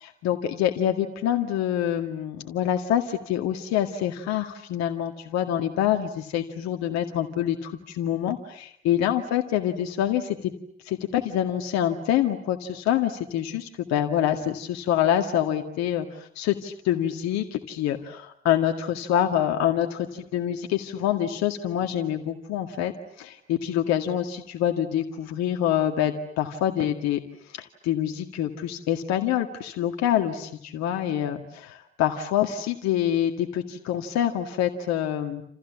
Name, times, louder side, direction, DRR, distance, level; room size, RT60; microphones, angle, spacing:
voice 1, 0.0-10.5 10.9-22.9 23.2-27.2 27.5-35.4, left 11 dB, 60° left, 5 dB, 2.1 m, -26 dB
28.5 x 28.5 x 7.3 m, 0.69 s
figure-of-eight pair, 55°, 31 cm